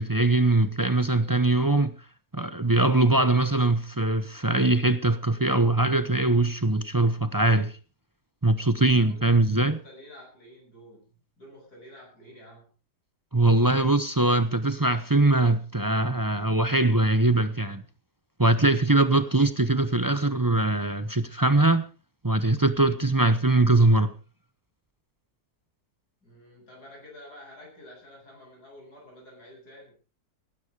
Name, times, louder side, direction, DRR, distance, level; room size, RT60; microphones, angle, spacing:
voice 1, 0.0-1.9 2.3-7.7 8.4-9.8 13.3-17.8 18.4-21.8 22.2-24.1, right 2 dB, 20° right, 0.6 m, -22 dB
voice 2, 9.0-12.7 26.2-29.9, left 1 dB, 80° left, 8.8 m, -49 dB
16.5 x 12.0 x 4.8 m
omnidirectional pair, 1.7 m